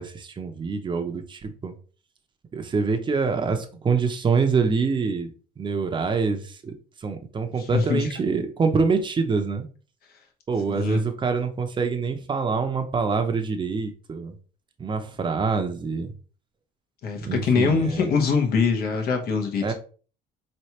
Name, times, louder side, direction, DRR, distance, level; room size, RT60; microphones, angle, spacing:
voice 1, 0.0-1.7 2.5-6.7 7.0-9.7 10.5-14.4 14.8-16.1 17.2-18.1 19.6-19.7, right 5 dB, 30° right, 6 dB, 0.8 m, -25 dB
voice 2, 7.6-8.1 10.7-11.0 17.0-19.7, left 5 dB, 65° left, 3 dB, 1.2 m, -23 dB
4.5 x 3.2 x 2.9 m, 0.38 s
cardioid pair, 110°, 17 cm